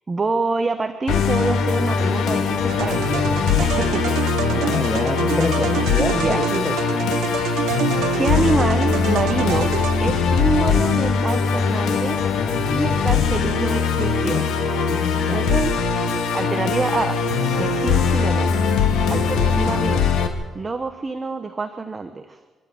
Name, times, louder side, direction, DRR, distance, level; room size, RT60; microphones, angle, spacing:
voice 1, 0.1-4.2 4.5-4.7 6.1-6.4 7.4-7.8 8.2-9.7 10.0-12.3 12.7-14.5 15.3-16.1 16.3-17.2 17.5-18.5 19.1-20.0 20.5-22.4, right 4 dB, 20° right, 8 dB, 0.9 m, -26 dB
Musical instrument, 1.1-20.3, left 5 dB, 85° left, 2.1 m, -21 dB
sound 1, 2.7-10.4, right 11 dB, 80° right, 0.9 m, -28 dB
voice 2, 4.6-6.7, left 1 dB, 10° left, 7 dB, 1.1 m, -26 dB
27.5 x 12.5 x 8.6 m, 1.4 s
cardioid pair, 170°, 0 cm